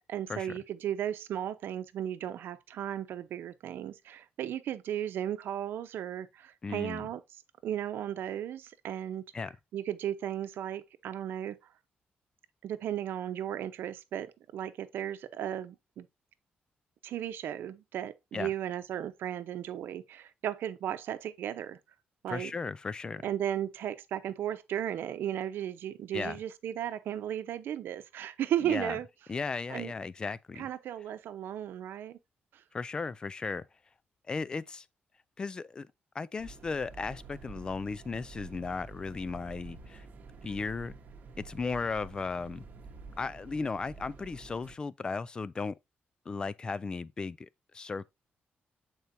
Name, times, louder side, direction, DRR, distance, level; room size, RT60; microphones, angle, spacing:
voice 1, 0.0-7.2 7.6-9.2 9.7-11.6 12.6-16.1 17.0-21.8 22.2-22.5 23.2-29.1 29.7-29.9 30.6-32.2, right 10 dB, 80° right, 0.7 m, -35 dB
voice 2, 6.6-7.1 9.3-9.5 18.3-18.5 22.3-23.3 26.1-26.4 28.6-29.0 29.3-30.7 32.7-33.6 34.3-34.9 35.4-35.9 36.1-40.1 40.4-41.0 41.4-42.6 43.2-45.8 46.3-47.5 47.7-48.1, left 4 dB, 25° left, 0.3 m, -36 dB
sound 1, 36.4-44.7, right 4 dB, 50° right, 1.0 m, -49 dB
8.2 x 4.5 x 2.7 m
wide cardioid pair, 170°, 4 cm